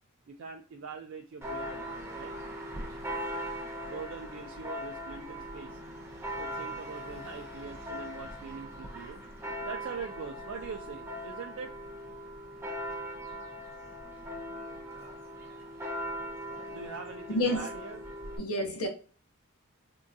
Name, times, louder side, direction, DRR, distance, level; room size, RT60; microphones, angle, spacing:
voice 1, 0.3-2.4 3.9-5.8 6.4-9.2 9.6-11.8 16.5-18.0, right 5 dB, 55° right, 0.3 m, -43 dB
Church bell, 1.4-18.4, equal, 10° right, 0.6 m, -40 dB
voice 2, 17.3-17.7 18.4-18.9, left 1 dB, 85° left, 0.7 m, -29 dB
3.6 x 2.2 x 2.6 m
head